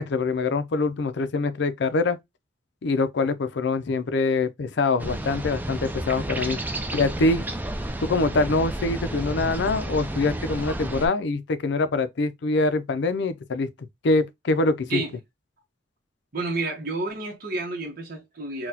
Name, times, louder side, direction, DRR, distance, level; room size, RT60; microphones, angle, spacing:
voice 1, 0.0-2.2 2.8-6.6 6.9-7.4 8.0-13.7 14.0-15.0, left 3 dB, 65° left, 0.4 m, -24 dB
sound 1, 5.0-11.1, right 1 dB, 10° right, 0.4 m, -31 dB
voice 2, 16.3-18.7, right 3 dB, 55° right, 0.9 m, -30 dB
4.0 x 2.2 x 2.7 m
head